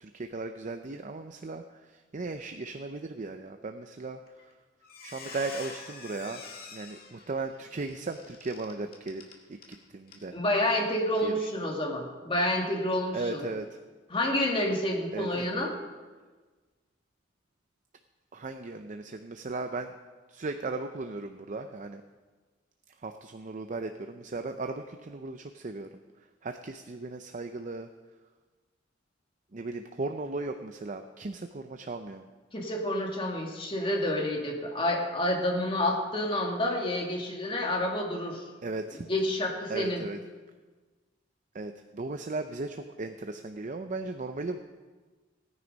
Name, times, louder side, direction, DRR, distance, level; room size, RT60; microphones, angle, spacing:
voice 1, 0.0-4.5 5.0-6.4 6.7-9.6 9.9-10.3 11.2-11.7 13.1-13.7 15.1-15.3 18.3-19.9 20.3-22.0 23.0-25.9 26.4-27.9 29.5-32.3 38.6-39.0 39.7-40.2 41.5-44.6, right 3 dB, 40° right, 6 dB, 0.6 m, -36 dB
Squeak, 4.3-4.5 4.8-9.8 10.1-10.2 10.6-10.8, left 4 dB, 50° left, 2.1 m, -46 dB
voice 2, 10.3-13.4 14.1-15.8 32.5-38.4 38.9-40.0, left 1 dB, 30° left, 1 dB, 2.1 m, -29 dB
17.5 x 9.6 x 5.3 m, 1.4 s
head